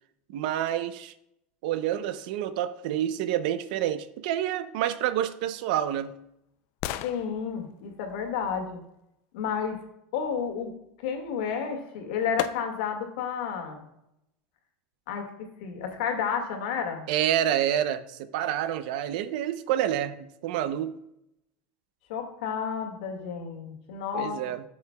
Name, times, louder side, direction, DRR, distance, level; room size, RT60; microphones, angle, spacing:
voice 1, 0.3-1.1 1.6-6.2 17.1-21.0 24.1-24.6, right 11 dB, 70° right, 13 dB, 0.6 m, -28 dB
sound 1, 5.4-9.4 11.5-11.6 12.4-13.1 13.6-13.7, left 13 dB, 50° left, 0.4 m, -40 dB
voice 2, 7.0-8.8 9.3-9.8 10.1-10.7 11.0-13.9 15.1-15.3 15.6-17.1 22.1-24.4, left 7 dB, 85° left, 4 dB, 1.9 m, -31 dB
12.5 x 6.4 x 2.3 m, 0.83 s
cardioid pair, 170°, 5 cm